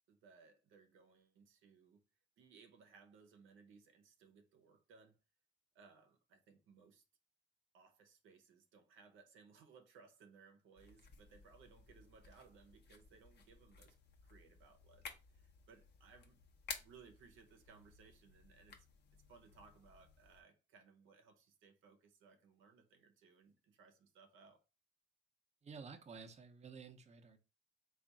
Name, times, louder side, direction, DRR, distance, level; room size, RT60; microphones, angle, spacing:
voice 1, 0.1-2.0 2.4-5.2 5.7-7.0 7.7-14.0 14.2-16.4 16.8-18.9 19.1-24.6, right 5 dB, 85° right, 0.8 m, -64 dB
sound 1, 10.8-20.4, left 5 dB, 60° left, 0.8 m, -55 dB
voice 2, 25.6-27.4, right 5 dB, 35° right, 0.7 m, -52 dB
3.5 x 2.4 x 4.0 m
cardioid pair, 90°, 20 cm